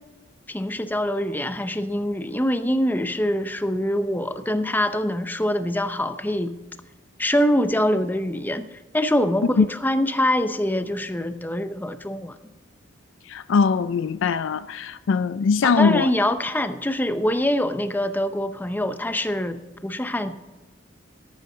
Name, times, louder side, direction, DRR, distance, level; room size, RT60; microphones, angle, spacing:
voice 1, 0.5-6.6 7.2-8.7 8.9-12.3 15.6-20.4, left 1 dB, 10° left, 0.7 m, -24 dB
voice 2, 13.3-16.1, left 5 dB, 80° left, 0.4 m, -21 dB
13.5 x 12.0 x 3.9 m
head